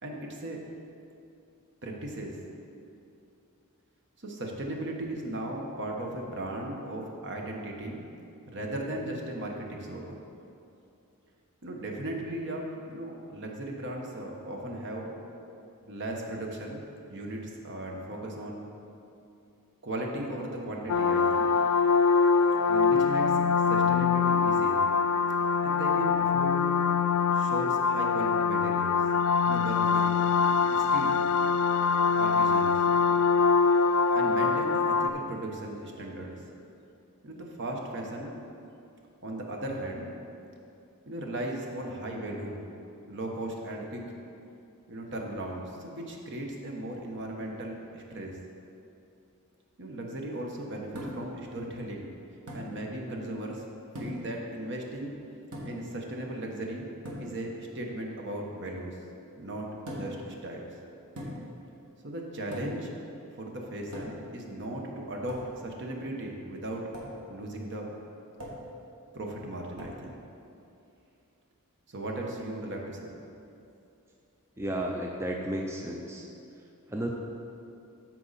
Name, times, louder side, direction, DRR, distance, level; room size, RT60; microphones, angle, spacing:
voice 1, 0.0-0.6 1.8-2.4 4.2-8.1 8.5-10.2 11.6-15.1 15.9-16.8 17.1-18.7 19.8-21.5 22.7-23.3 23.7-24.8 25.6-26.8 27.3-29.0 29.4-30.1 30.7-31.2 32.2-32.8 34.1-36.4 37.2-38.3 39.2-40.1 41.1-42.6 43.0-44.0 44.9-48.3 49.8-52.1 52.5-53.7 54.0-55.1 55.6-56.9 57.2-59.0 59.3-60.7 62.0-62.9 63.3-66.8 67.3-67.9 69.1-70.2 71.9-73.1, right 1 dB, 55° right, 0 dB, 1.1 m, -37 dB
sound 1, 20.9-35.1, left 5 dB, 70° left, 0.3 m, -24 dB
sound 2, 50.9-51.4 52.5-52.7 53.9-54.3 55.5-55.9 57.0-57.3 59.9-60.2 61.2-61.6 62.5-62.9 63.9-64.3 65.3-65.5 66.9-67.2 68.4-68.7 69.8-70.0, equal, 75° right, 1.6 m, -40 dB
voice 2, 74.6-76.3 76.9-77.1, right 1 dB, 10° right, 0 dB, 0.5 m, -33 dB
13.5 x 4.6 x 4.1 m, 2.7 s
head